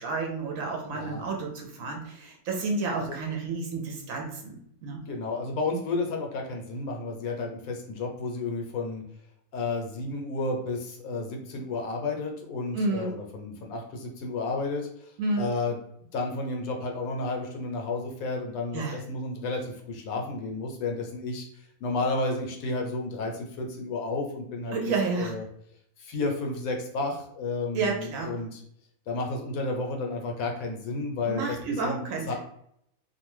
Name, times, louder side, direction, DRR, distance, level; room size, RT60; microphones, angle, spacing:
voice 1, 0.0-4.6 4.8-5.0 12.7-13.1 15.2-15.5 18.7-19.0 24.7-25.3 27.7-28.4 31.3-32.3, right 3 dB, 70° right, 1 dB, 0.9 m, -30 dB
voice 2, 0.9-1.2 2.9-3.2 5.1-9.0 9.5-15.8 16.1-21.5 21.8-24.8 25.2-25.4 26.0-28.6 29.1-31.6 31.8-32.3, left 3 dB, 70° left, 1 dB, 1.0 m, -32 dB
2.5 x 2.2 x 3.0 m, 0.71 s
omnidirectional pair, 1.6 m